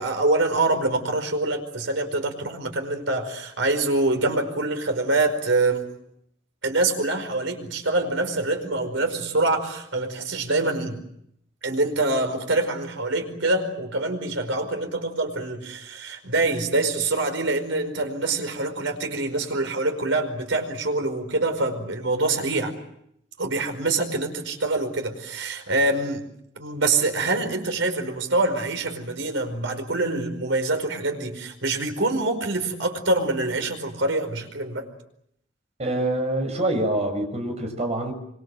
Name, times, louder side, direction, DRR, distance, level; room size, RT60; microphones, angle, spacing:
voice 1, 0.0-5.9 6.6-11.0 11.6-22.7 23.4-26.2 26.6-34.9, right 2 dB, 75° right, 6 dB, 5.1 m, -25 dB
voice 2, 35.8-38.1, right 1 dB, 35° right, 4 dB, 6.3 m, -25 dB
26.0 x 25.5 x 7.6 m, 0.76 s
head